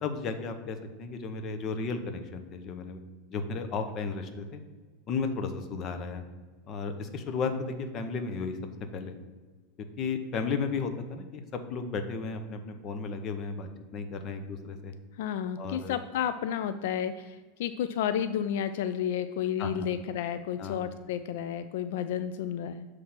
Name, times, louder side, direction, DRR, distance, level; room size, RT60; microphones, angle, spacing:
voice 1, 0.0-3.0 3.3-4.6 5.1-6.2 6.7-8.6 8.9-9.1 10.0-11.4 11.7-14.9 15.6-15.9 19.6-19.9 20.6-20.7, left 4 dB, 35° left, 7 dB, 0.7 m, -34 dB
voice 2, 15.2-22.9, left 9 dB, 75° left, 11 dB, 0.3 m, -31 dB
7.2 x 3.3 x 5.7 m, 1.4 s
supercardioid pair, 150°, 0 cm